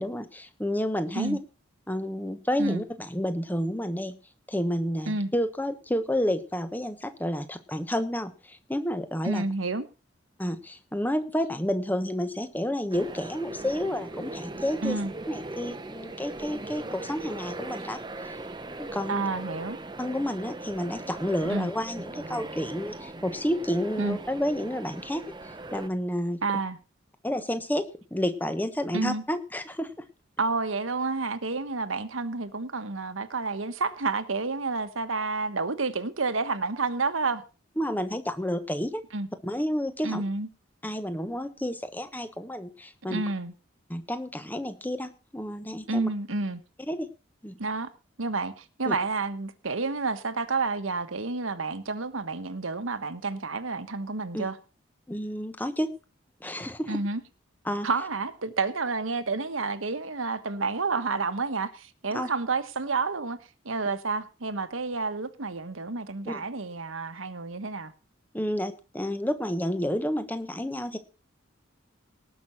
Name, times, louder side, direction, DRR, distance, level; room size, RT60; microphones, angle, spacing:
voice 1, 0.0-1.4 1.9-4.1 4.5-9.4 10.4-15.0 15.3-18.4 18.8-19.2 20.0-26.4 27.2-29.9 37.8-39.0 39.4-40.2 40.8-43.2 43.9-46.1 46.9-47.1 47.4-47.6 48.9-49.0 54.3-54.4 55.1-55.9 56.4-57.0 57.6-57.9 62.1-62.3 66.3-66.4 68.3-71.0, equal, 10° left, 1.1 m, -30 dB
voice 2, 9.2-9.8 14.8-15.1 19.1-19.8 21.5-21.7 24.0-24.2 26.4-26.8 28.9-29.2 30.4-37.4 39.1-39.3 40.0-40.5 43.1-43.5 45.9-46.6 47.6-47.9 48.2-54.6 56.9-57.2 57.8-63.4 63.6-67.9, right 3 dB, 90° right, 1.3 m, -30 dB
sound 1, 12.9-25.9, right 2 dB, 20° right, 0.9 m, -39 dB
18.5 x 6.2 x 5.9 m
head